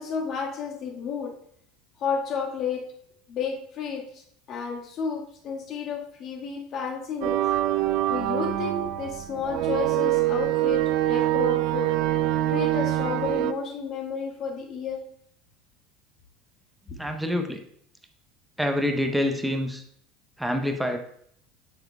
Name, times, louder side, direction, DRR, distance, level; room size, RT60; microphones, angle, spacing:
voice 1, 0.0-1.3 2.0-2.8 3.3-4.2 4.5-7.4 8.1-11.9 12.5-15.0, left 5 dB, 45° left, -1 dB, 1.5 m, -31 dB
sound 1, 7.2-13.5, right 14 dB, 55° right, 0.3 m, -24 dB
voice 2, 17.0-17.6 18.6-19.8 20.4-21.0, left 1 dB, 5° right, 5 dB, 0.8 m, -26 dB
7.7 x 6.7 x 2.2 m, 0.67 s
figure-of-eight pair, 70°, 0 cm